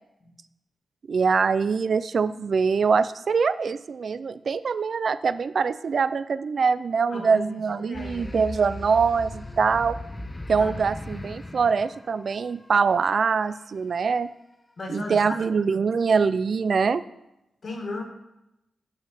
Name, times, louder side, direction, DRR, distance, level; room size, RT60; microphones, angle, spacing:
voice 1, 1.1-10.0 10.5-14.3 14.9-17.0, right 5 dB, 60° right, 14 dB, 0.3 m, -23 dB
voice 2, 7.1-8.3 10.6-10.7 14.8-15.4 17.6-18.0, left 2 dB, 50° left, 2 dB, 1.7 m, -35 dB
sound 1, 7.9-12.9, left 1 dB, 20° left, 0.6 m, -38 dB
8.5 x 5.0 x 5.6 m, 0.89 s
wide cardioid pair, 95°, 0 cm